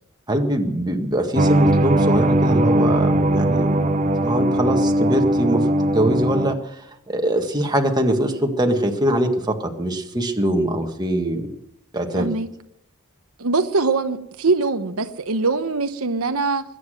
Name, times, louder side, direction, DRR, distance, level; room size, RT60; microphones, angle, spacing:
voice 1, 0.3-3.9 4.2-5.6 5.9-6.8 7.1-11.6 11.9-12.3, right 1 dB, 20° right, 3 dB, 1.7 m, -22 dB
sound 1, 1.4-6.6, right 1 dB, 35° right, 0.9 m, -19 dB
voice 2, 12.2-12.5 13.4-16.6, right 3 dB, 80° right, 8 dB, 1.0 m, -22 dB
21.0 x 9.7 x 6.4 m, 0.76 s
head